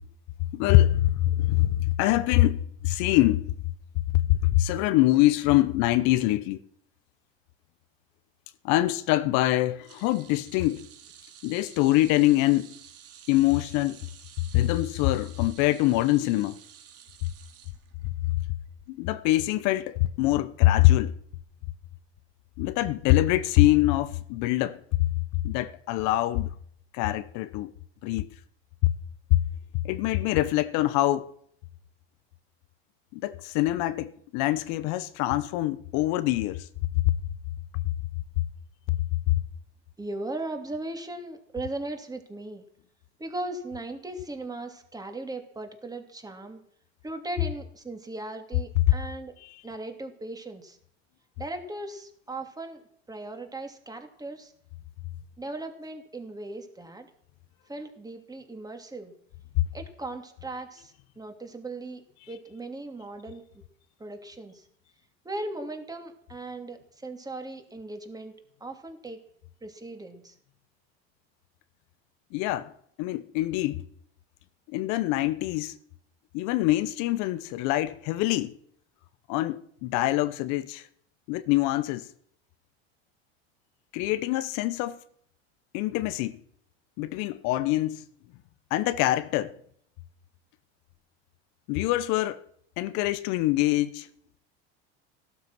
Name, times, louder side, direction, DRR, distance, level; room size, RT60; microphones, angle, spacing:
voice 1, 0.5-3.5 4.1-6.6 8.6-10.9 11.4-12.7 13.3-14.0 14.5-16.5 18.3-18.4 18.9-21.1 22.6-24.8 25.4-26.5 26.9-27.7 28.0-28.3 29.3-29.4 29.8-31.3 33.1-36.7 37.0-37.1 39.3-39.4 49.4-49.6 72.3-72.7 73.0-73.8 74.7-75.7 76.3-78.6 79.3-80.9 81.3-82.1 83.9-85.0 85.7-86.4 87.0-88.0 88.7-89.5 91.7-92.4 92.8-94.1, left 16 dB, 65° left, 1.0 m, -24 dB
sound 1, 9.8-18.3 18.7-18.9 20.1-20.2, right 9 dB, 50° right, 3.0 m, -51 dB
voice 2, 40.0-42.6 43.2-46.6 47.0-49.3 49.6-50.8 51.4-52.8 53.1-54.5 55.4-57.1 57.7-59.1 59.7-62.0 62.3-63.6 64.0-64.6 65.2-68.3 68.6-69.2 69.6-70.3, right 2 dB, 10° right, 2.8 m, -38 dB
15.5 x 12.5 x 6.1 m
supercardioid pair, 110°, 31 cm